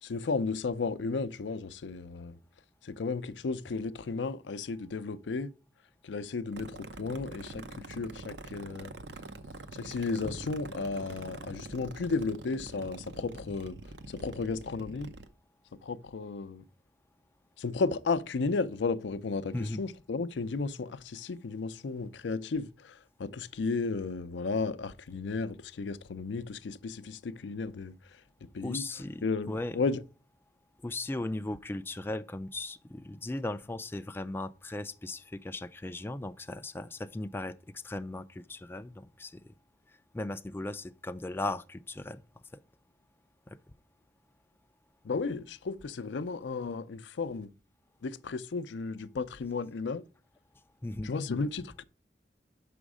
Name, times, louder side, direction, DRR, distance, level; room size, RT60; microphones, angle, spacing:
voice 1, 0.0-2.4 2.8-5.5 6.0-8.9 9.7-15.1 15.8-16.7 17.6-28.2 28.5-30.0 45.0-47.5 48.0-50.0 51.0-51.8, left 4 dB, 85° left, 0.5 m, -34 dB
sound 1, 6.5-15.3, right 2 dB, 70° right, 0.7 m, -45 dB
voice 2, 28.6-29.7 30.8-37.6 37.8-39.4 40.1-42.2 42.5-42.6 43.5-43.6 50.8-51.1, left 2 dB, 15° left, 0.3 m, -37 dB
6.2 x 5.1 x 4.8 m
head